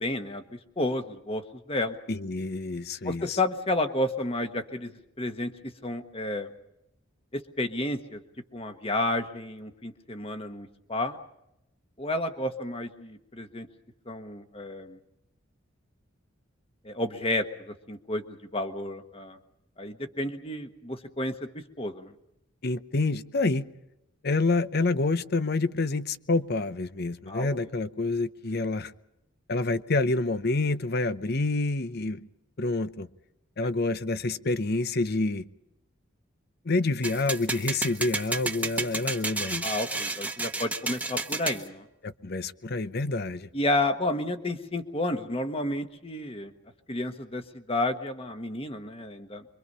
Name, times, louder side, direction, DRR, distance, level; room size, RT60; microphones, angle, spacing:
voice 1, 0.0-2.0 3.0-5.5 5.8-6.5 7.3-8.2 8.5-11.2 12.0-13.7 14.1-15.0 16.8-19.4 19.8-21.5 21.8-22.1 27.3-27.5 39.6-41.9 43.5-46.5 46.9-49.5, left 1 dB, 25° left, 1.4 m, -31 dB
voice 2, 2.1-3.4 22.6-23.7 24.2-28.9 29.5-32.2 32.6-33.1 33.6-35.4 36.6-39.7 42.0-43.5, left 3 dB, 50° left, 0.8 m, -28 dB
sound 1, 37.0-41.6, right 2 dB, 5° right, 1.0 m, -31 dB
25.0 x 24.0 x 5.5 m
head